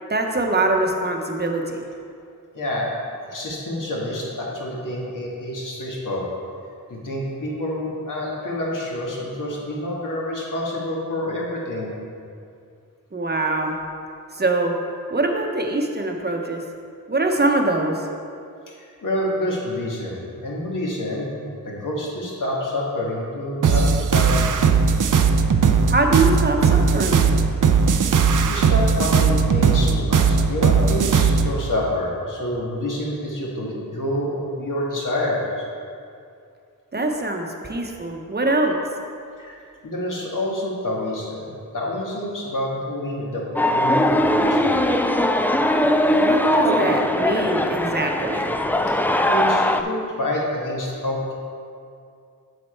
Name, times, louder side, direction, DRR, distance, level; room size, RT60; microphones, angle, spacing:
voice 1, 0.1-1.8 13.1-13.8 14.3-14.7 15.1-16.6 17.1-18.1 25.9-27.3 36.9-38.8 46.2-48.5, right 2 dB, 30° right, 2 dB, 0.9 m, -23 dB
voice 2, 2.5-2.9 3.3-6.3 6.9-11.9 18.7-18.8 19.0-21.3 21.6-24.5 27.8-28.1 28.4-35.7 39.4-39.5 39.8-43.5 43.7-44.8 48.9-49.0 49.3-51.3, left 1 dB, 60° left, -4 dB, 1.9 m, -27 dB
sound 1, 23.6-31.5, right 5 dB, 60° right, 0.6 m, -18 dB
sound 2, 43.6-49.8, left 1 dB, 5° left, 0.3 m, -20 dB
7.7 x 6.8 x 4.5 m, 2.4 s
wide cardioid pair, 80°, 35 cm